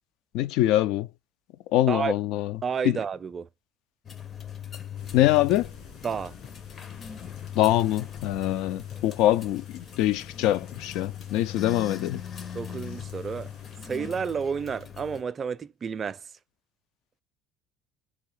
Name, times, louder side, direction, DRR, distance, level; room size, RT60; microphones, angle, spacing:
voice 1, 0.3-1.1 1.7-2.6 2.8-3.0 5.1-5.7 7.5-12.2, left 14 dB, 70° left, 0.4 m, -24 dB
voice 2, 2.6-3.5 6.0-6.3 12.5-13.5 13.9-16.2, right 6 dB, 30° right, 0.4 m, -30 dB
sound 1, 4.0-15.2, left 9 dB, 35° left, 0.7 m, -40 dB
sound 2, 4.9-13.9, left 5 dB, 55° left, 2.2 m, -52 dB
3.9 x 2.7 x 4.8 m
supercardioid pair, 110°, 0 cm